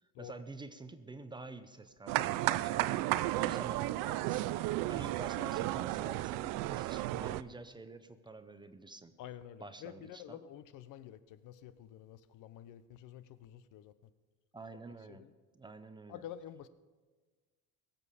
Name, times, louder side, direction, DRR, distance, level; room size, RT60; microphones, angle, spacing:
voice 1, 0.2-9.1 9.6-10.4 14.5-15.2 15.5-16.3, right 3 dB, 15° right, 10 dB, 0.5 m, -48 dB
sound 1, 2.1-7.4, right 16 dB, 75° right, 0.5 m, -33 dB
voice 2, 9.2-13.9 15.1-15.3 16.1-16.7, left 11 dB, 65° left, 14 dB, 0.7 m, -49 dB
22.0 x 7.6 x 5.0 m, 1.4 s
cardioid pair, 140°, 34 cm